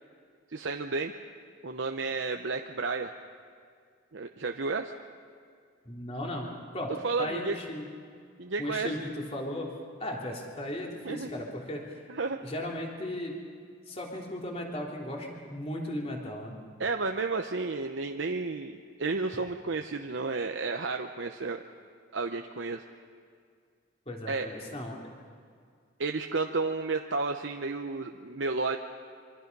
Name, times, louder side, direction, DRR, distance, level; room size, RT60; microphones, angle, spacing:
voice 1, 0.5-1.1 1.6-3.1 4.1-4.9 7.0-7.6 8.4-8.9 11.0-11.3 12.1-12.4 16.8-21.6 22.1-22.8 24.3-24.5 26.0-28.8, right 3 dB, 70° right, 4 dB, 0.8 m, -32 dB
voice 2, 5.8-6.9 7.2-7.9 8.6-9.7 10.0-12.0 12.4-13.4 13.9-16.5 24.0-25.1, left 1 dB, 30° left, -1 dB, 3.2 m, -36 dB
26.5 x 24.5 x 5.4 m, 2.2 s
head